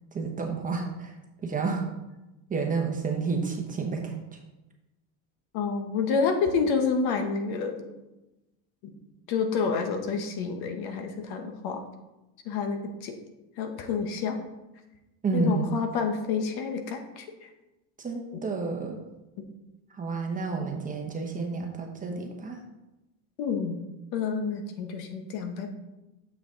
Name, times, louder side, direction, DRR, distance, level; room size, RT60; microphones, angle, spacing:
voice 1, 0.1-1.1 1.4-1.8 2.5-4.1 15.2-15.7 18.0-19.0 20.0-22.6, right 4 dB, 20° right, 2 dB, 1.1 m, -30 dB
voice 2, 5.5-7.9 8.8-9.0 9.3-11.8 12.4-13.2 13.6-14.4 15.3-17.5 18.3-18.4 19.4-19.5 23.4-23.8 24.1-25.7, left 5 dB, 60° left, 6 dB, 1.1 m, -29 dB
7.0 x 5.9 x 3.8 m, 1.0 s
cardioid pair, 130°, 42 cm